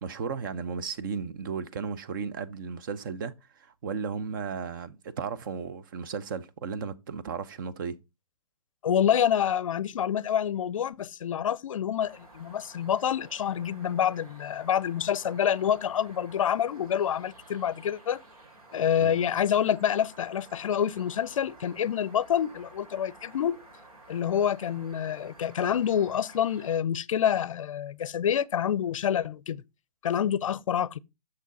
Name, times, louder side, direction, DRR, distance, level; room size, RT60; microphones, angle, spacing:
voice 1, 0.0-8.0 19.0-19.1, right 6 dB, 35° right, 0.6 m, -35 dB
voice 2, 8.8-18.2 18.7-23.6 24.1-29.6 30.0-31.0, left 9 dB, 60° left, 0.5 m, -27 dB
sound 1, 12.0-26.8, right 2 dB, 75° right, 2.7 m, -52 dB
6.5 x 6.1 x 4.0 m
hypercardioid pair, 160°, 19 cm